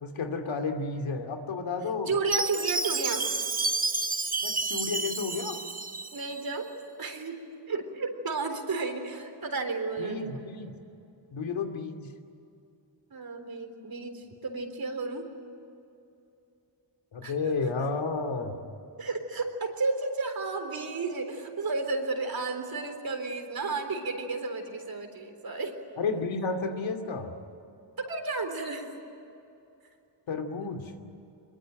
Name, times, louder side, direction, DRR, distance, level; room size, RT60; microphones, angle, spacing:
voice 1, 0.0-2.1 4.4-5.6 10.0-10.7 11.3-12.1 17.1-18.6 26.0-27.3 30.3-30.9, left 4 dB, 90° left, 6 dB, 2.7 m, -32 dB
voice 2, 2.1-3.2 6.1-6.7 7.0-10.4 13.1-15.3 17.2-17.3 19.0-25.8 28.0-28.9, right 3 dB, 50° right, 6 dB, 3.9 m, -32 dB
Chime, 2.3-6.4, right 3 dB, 20° right, 1.0 m, -30 dB
24.0 x 22.5 x 9.0 m, 2.7 s
wide cardioid pair, 110°, 45 cm